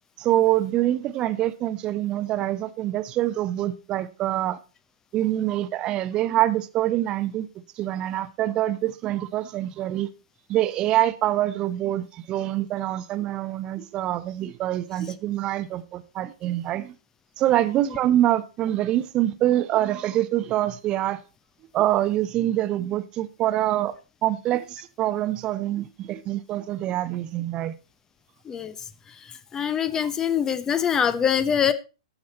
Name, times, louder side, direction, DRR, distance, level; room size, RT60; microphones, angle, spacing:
voice 1, 0.2-4.6 5.1-7.5 7.8-10.1 10.5-17.0 17.4-21.2 21.7-23.9 24.2-27.7 30.0-30.1, right 13 dB, 30° right, 0.8 m, -25 dB
voice 2, 29.5-31.7, left 8 dB, 15° left, 0.7 m, -23 dB
14.0 x 7.3 x 4.2 m
figure-of-eight pair, 105°, 3 cm